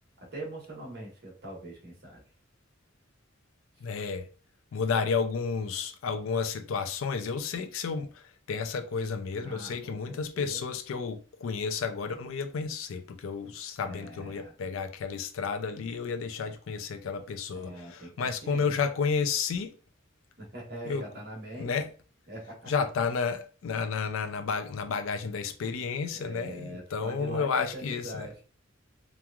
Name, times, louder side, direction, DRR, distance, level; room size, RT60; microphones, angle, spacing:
voice 1, 0.3-2.2 9.4-10.6 13.8-14.5 17.5-18.7 20.4-21.7 22.3-22.7 26.1-28.4, right 1 dB, 50° right, 1.2 m, -42 dB
voice 2, 3.8-4.3 4.7-8.1 8.5-19.7 20.9-21.0 21.6-21.9 22.7-28.3, left 5 dB, 85° left, 0.4 m, -31 dB
3.0 x 2.4 x 2.3 m
head